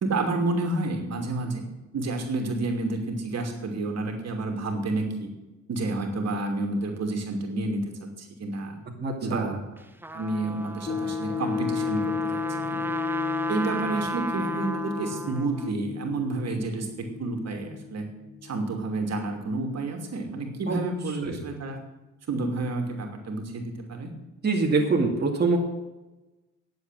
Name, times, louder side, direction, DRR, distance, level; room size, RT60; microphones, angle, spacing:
voice 1, 0.0-1.7 1.9-5.3 5.7-7.8 8.2-8.8 9.2-9.6 10.1-12.4 12.7-12.9 13.5-18.1 18.4-21.8 22.3-24.1, right 2 dB, 60° right, 3 dB, 2.8 m, -30 dB
voice 2, 9.0-9.5 20.7-20.8 21.2-21.4 24.4-25.6, right 3 dB, 35° right, -1 dB, 2.4 m, -24 dB
Trumpet, 9.8-15.7, right 2 dB, 5° right, 0.9 m, -34 dB
sound 1, 10.9-19.3 19.8-19.9, left 6 dB, 35° left, 0.9 m, -33 dB
10.5 x 7.8 x 9.1 m, 1.1 s
cardioid pair, 90°, 30 cm